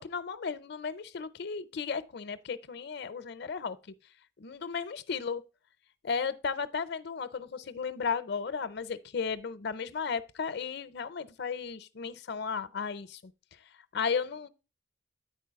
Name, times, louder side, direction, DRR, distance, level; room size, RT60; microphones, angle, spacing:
voice 1, 0.0-3.8 4.4-5.4 6.0-13.3 13.9-14.5, left 5 dB, 60° left, 0.6 m, -34 dB
9.4 x 4.5 x 4.6 m
head